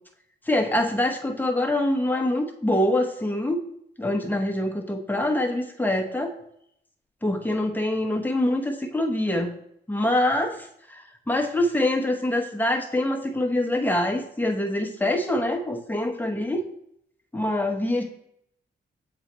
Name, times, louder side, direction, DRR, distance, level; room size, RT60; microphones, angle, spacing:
voice 1, 0.5-3.6 4.0-6.3 7.2-9.5 9.9-16.6 17.3-18.0, left 1 dB, 10° left, 2 dB, 1.0 m, -25 dB
7.9 x 4.0 x 3.1 m, 0.74 s
cardioid pair, 60°, 20 cm